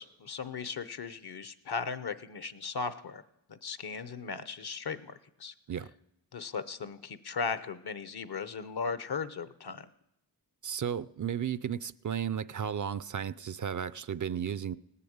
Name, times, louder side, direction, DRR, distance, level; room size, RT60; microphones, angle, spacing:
voice 1, 0.0-3.2 3.5-5.5 6.3-9.9, left 5 dB, 60° left, 0.9 m, -37 dB
voice 2, 10.6-14.8, right 8 dB, 45° right, 0.5 m, -34 dB
18.0 x 6.9 x 8.7 m
cardioid pair, 40°, 42 cm